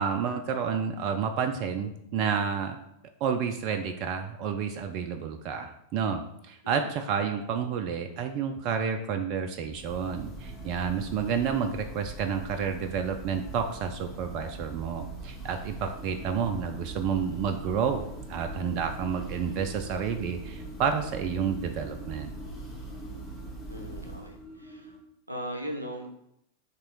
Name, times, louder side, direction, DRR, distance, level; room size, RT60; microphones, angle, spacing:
voice 1, 0.0-2.8 3.2-18.0 18.3-22.3, right 6 dB, 40° right, 5 dB, 0.3 m, -30 dB
Church bell, 9.6-24.5, right 2 dB, 15° left, 1.0 m, -42 dB
sound 1, 15.9-25.0, left 1 dB, 35° left, 1.6 m, -47 dB
voice 2, 23.7-24.9 25.3-26.1, equal, 85° right, 2 dB, 0.6 m, -38 dB
3.0 x 2.9 x 4.5 m, 0.78 s
figure-of-eight pair, 90°, 0 cm